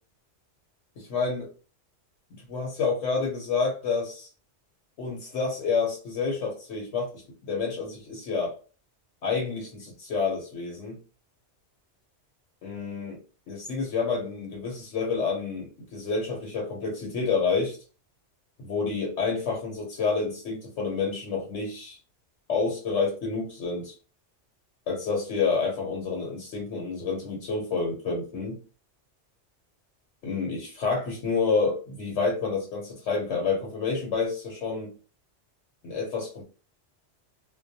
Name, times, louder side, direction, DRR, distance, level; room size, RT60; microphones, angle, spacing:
voice 1, 1.0-1.5 2.3-4.3 5.0-8.6 9.2-11.0 12.6-13.2 13.5-17.8 18.6-22.0 22.5-24.0 24.9-28.6 30.2-34.9 35.8-36.4, left 4 dB, 80° left, -2 dB, 1.1 m, -29 dB
2.2 x 2.2 x 2.6 m, 0.35 s
omnidirectional pair, 1.2 m